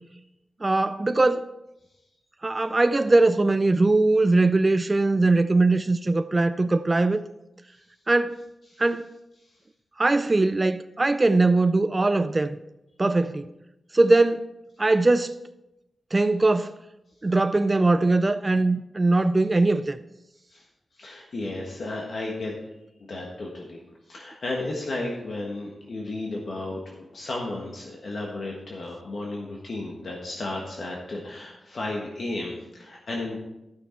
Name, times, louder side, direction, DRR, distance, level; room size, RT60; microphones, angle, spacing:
voice 1, 0.6-1.5 2.4-7.2 8.1-8.4 8.8-9.1 10.0-12.6 13.0-13.5 13.9-14.5 14.8-15.4 16.1-16.7 17.2-20.0, right 2 dB, 25° right, 0.3 m, -21 dB
voice 2, 21.0-22.6 23.1-23.8 24.1-33.4, left 2 dB, 60° left, 1.5 m, -33 dB
11.5 x 6.3 x 4.5 m
wide cardioid pair, 105°, 0 cm